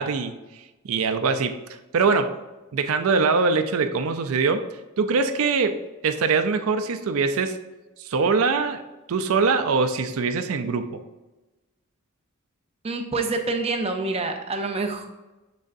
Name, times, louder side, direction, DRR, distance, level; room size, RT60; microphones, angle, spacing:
voice 1, 0.0-1.6 1.9-2.3 2.7-4.7 5.0-7.6 8.0-8.8 9.1-11.0, right 4 dB, 70° right, 8 dB, 0.4 m, -23 dB
voice 2, 12.8-15.1, right 3 dB, 30° right, 5 dB, 0.6 m, -27 dB
6.3 x 6.2 x 2.6 m, 1.1 s
head